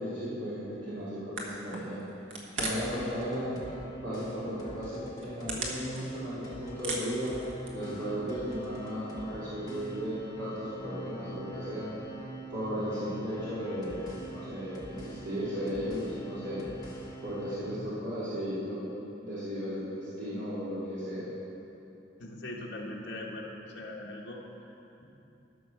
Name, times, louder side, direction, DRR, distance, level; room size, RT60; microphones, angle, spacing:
voice 1, 0.0-2.0 2.5-3.6 4.0-7.3 7.7-11.9 12.5-14.1 14.3-16.6 17.2-18.8 19.2-21.3, equal, 70° right, -12 dB, 2.6 m, -35 dB
sound 1, 1.0-1.1 1.3-3.0 3.3-3.9 4.3-4.4 5.0-6.4 6.7-7.9, right 2 dB, 90° right, 1.5 m, -37 dB
sound 2, 2.7-17.5, right 1 dB, 20° left, 1.3 m, -45 dB
voice 2, 22.2-25.0, left 1 dB, 70° left, -2 dB, 1.2 m, -41 dB
13.0 x 5.5 x 6.3 m, 2.8 s
head